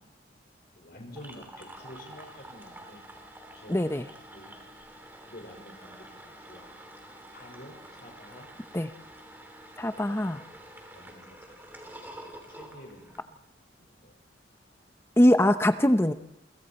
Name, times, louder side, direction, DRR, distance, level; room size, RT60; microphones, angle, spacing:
voice 1, 0.8-3.0 3.6-4.0 4.3-4.5 5.2-6.0 6.2-6.7 7.3-8.5 10.1-10.2 10.9-11.6 12.2-13.4 13.8-14.2, left 1 dB, 55° left, 2 dB, 5.1 m, -49 dB
sound 1, 1.1-13.2, right 1 dB, 10° right, 3.1 m, -48 dB
voice 2, 3.7-4.1 8.7-8.9 9.8-10.4 15.2-16.1, left 1 dB, 15° left, 9 dB, 0.7 m, -22 dB
29.0 x 24.0 x 4.3 m, 0.84 s
head